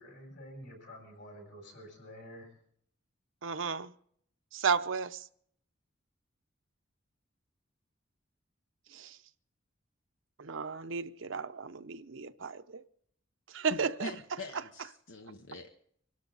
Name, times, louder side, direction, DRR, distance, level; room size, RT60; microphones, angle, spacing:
voice 1, 0.0-2.5, equal, 65° left, 6.5 m, -49 dB
voice 2, 3.4-3.9 4.5-5.3 8.9-9.2 10.4-12.8 13.5-14.9, right 5 dB, 75° right, 0.7 m, -34 dB
voice 3, 14.0-15.7, left 2 dB, 90° left, 1.1 m, -44 dB
25.0 x 12.5 x 4.0 m
head